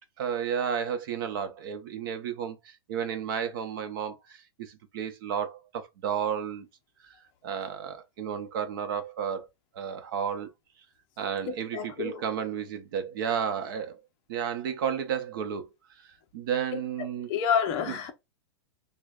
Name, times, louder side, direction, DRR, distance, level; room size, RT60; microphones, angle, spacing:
voice 1, 0.2-6.7 7.4-9.5 9.7-10.5 11.2-14.0 14.3-15.7 16.3-17.3 17.9-18.0, right 8 dB, 50° right, 0.7 m, -32 dB
voice 2, 11.5-12.2 17.3-18.1, left 7 dB, 30° left, 0.5 m, -28 dB
6.1 x 2.1 x 2.3 m
supercardioid pair, 165°, 14 cm